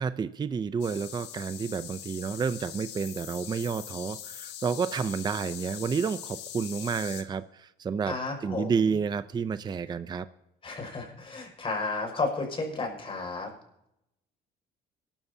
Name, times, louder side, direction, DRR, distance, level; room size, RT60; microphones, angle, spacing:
voice 1, 0.0-10.3, right 6 dB, 25° right, 13 dB, 0.5 m, -30 dB
sound 1, 0.8-7.2, left 11 dB, 85° left, 1.5 m, -42 dB
voice 2, 8.1-9.0 10.6-13.5, left 3 dB, 35° left, 1 dB, 5.7 m, -33 dB
23.0 x 13.0 x 2.8 m, 0.83 s
cardioid pair, 110°, 17 cm